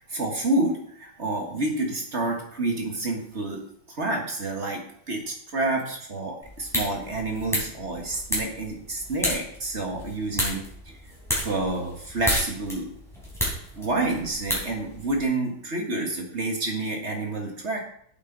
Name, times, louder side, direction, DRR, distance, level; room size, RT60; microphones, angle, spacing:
voice 1, 0.1-3.6 3.9-4.8 5.1-10.6 11.4-12.9 13.8-17.8, right 2 dB, 35° right, 2 dB, 1.6 m, -28 dB
sound 1, 6.4-15.3, equal, ahead, 3.6 m, -32 dB
8.9 x 8.2 x 3.9 m, 0.65 s
omnidirectional pair, 2.4 m